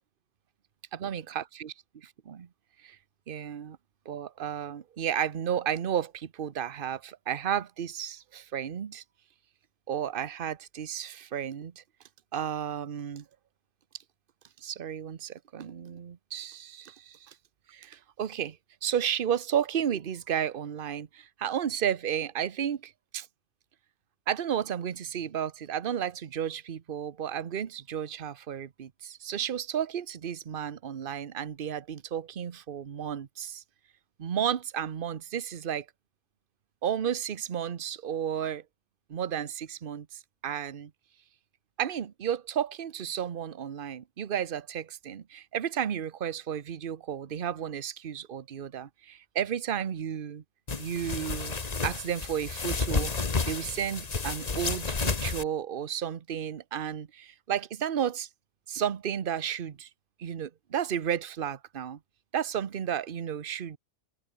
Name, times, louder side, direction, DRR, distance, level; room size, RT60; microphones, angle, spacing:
voice 1, 0.9-1.7 2.3-2.5 2.8-3.0 3.3-3.8 4.1-9.0 9.9-11.8 12.3-13.2 14.6-17.3 17.7-18.6 18.8-23.3 24.3-33.6 34.2-35.9 36.8-38.6 39.1-40.9 41.8-50.4 50.8-51.6 51.8-53.1 53.4-58.3 58.7-59.9 60.2-62.0 62.3-63.8, right 9 dB, 45° right, 1.0 m, -33 dB
sound 1, 50.7-55.4, left 4 dB, 30° left, 1.3 m, -31 dB
omnidirectional pair, 1.5 m